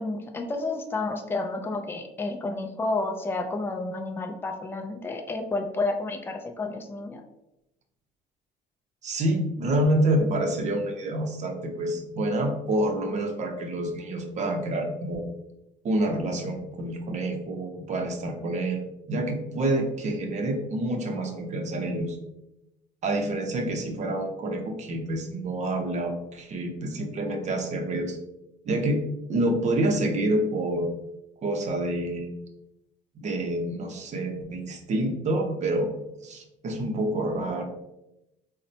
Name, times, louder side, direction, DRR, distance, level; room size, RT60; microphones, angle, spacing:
voice 1, 0.0-7.2, left 3 dB, 15° left, 4 dB, 0.4 m, -30 dB
voice 2, 9.0-15.2 15.8-22.2 23.0-28.2 28.6-29.0 29.3-30.9 31.4-32.3 33.2-36.0 36.2-37.6, right 1 dB, 45° right, 3 dB, 0.6 m, -27 dB
4.0 x 2.1 x 2.7 m, 0.89 s
cardioid pair, 110°, 17 cm